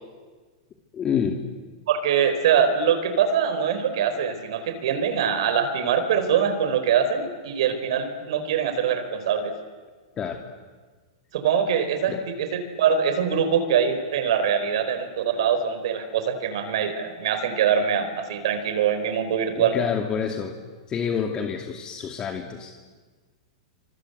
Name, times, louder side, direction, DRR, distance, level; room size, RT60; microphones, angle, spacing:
voice 1, 0.9-1.4 10.2-10.4 12.1-12.2 19.7-20.6 20.9-22.7, left 7 dB, 25° left, 4 dB, 2.5 m, -27 dB
voice 2, 1.9-9.5 11.3-19.8, right 7 dB, 70° right, 9 dB, 4.5 m, -23 dB
28.5 x 26.0 x 8.0 m, 1.4 s
hypercardioid pair, 120°, 3 cm